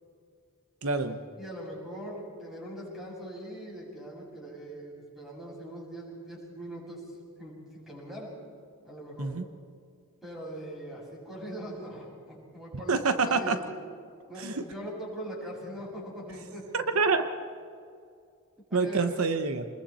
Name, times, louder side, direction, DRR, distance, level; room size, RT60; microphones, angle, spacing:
voice 1, 0.8-1.2 9.2-9.5 12.9-13.6 14.4-14.6 16.7-17.2 18.7-19.7, right 4 dB, 80° right, 8 dB, 1.1 m, -26 dB
voice 2, 1.4-7.0 7.4-8.3 8.8-9.3 10.2-13.0 13.2-13.6 14.3-16.8 18.7-19.1, equal, ahead, -4 dB, 6.9 m, -41 dB
28.0 x 21.0 x 4.4 m, 2.3 s
head